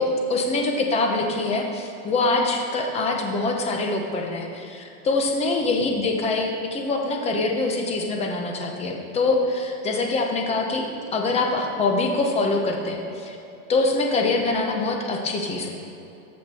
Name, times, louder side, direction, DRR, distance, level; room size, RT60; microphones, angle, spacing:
voice 1, 0.0-10.9 11.1-13.4 13.7-15.7, left 3 dB, 15° left, 2 dB, 0.8 m, -24 dB
13.5 x 6.6 x 4.3 m, 2.9 s
supercardioid pair, 165°, 40 cm